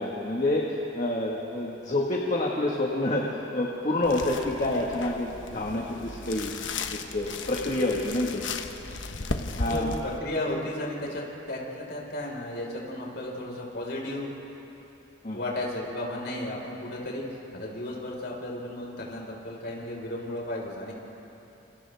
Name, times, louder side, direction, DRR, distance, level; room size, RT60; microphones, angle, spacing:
voice 1, 0.0-6.5 6.9-8.5 9.6-10.0 15.2-15.4, left 1 dB, 40° left, -2 dB, 1.6 m, -28 dB
sound 1, 4.0-10.2, left 3 dB, 70° left, 1.1 m, -36 dB
voice 2, 9.6-14.3 15.3-20.9, left 1 dB, 55° left, -2 dB, 4.7 m, -34 dB
29.0 x 28.5 x 3.5 m, 3.0 s
head